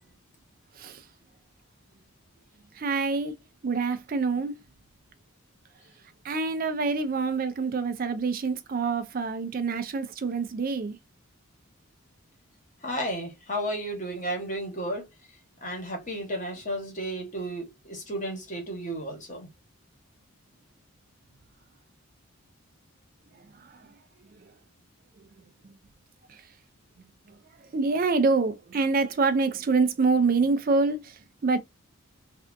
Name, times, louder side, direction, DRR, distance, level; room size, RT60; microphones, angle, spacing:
voice 1, 2.8-3.3 3.6-4.6 6.2-11.0 26.3-26.4 27.7-31.6, right 4 dB, 40° right, 0.3 m, -26 dB
voice 2, 12.8-15.1 15.6-19.5, right 1 dB, 35° left, 1.1 m, -33 dB
3.3 x 2.5 x 2.5 m
head